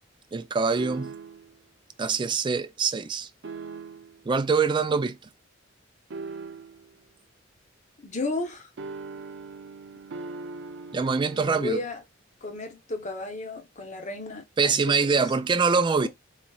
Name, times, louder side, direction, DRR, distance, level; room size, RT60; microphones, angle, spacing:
voice 1, 0.3-1.1 2.0-3.3 4.3-5.2 10.9-11.8 14.6-16.1, right 5 dB, 25° right, 0.3 m, -24 dB
sound 1, 0.8-1.6 3.4-4.2 6.1-6.9 8.8-11.5, right 4 dB, 65° right, 0.6 m, -40 dB
voice 2, 8.0-8.7 11.3-12.0 12.4-15.0, left 2 dB, 40° left, 1.0 m, -33 dB
4.0 x 2.9 x 2.3 m
head